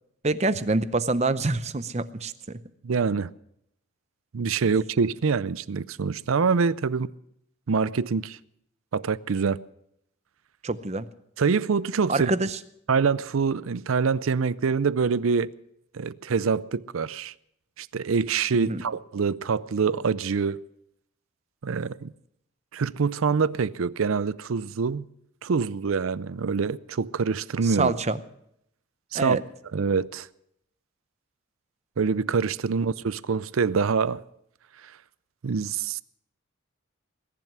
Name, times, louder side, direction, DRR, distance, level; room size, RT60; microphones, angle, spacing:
voice 1, 0.2-2.6 10.6-11.0 12.1-12.6 18.5-18.8 27.6-28.2 29.1-29.4, right 3 dB, 30° right, 0.7 m, -26 dB
voice 2, 2.8-3.3 4.3-7.1 7.7-8.4 8.9-9.6 11.4-12.3 12.9-15.5 15.9-17.3 17.8-20.6 21.6-22.1 22.7-25.1 25.4-27.9 29.1-29.4 29.7-30.3 32.0-34.2 35.4-36.0, right 5 dB, 80° right, 0.5 m, -25 dB
20.5 x 11.0 x 6.0 m
head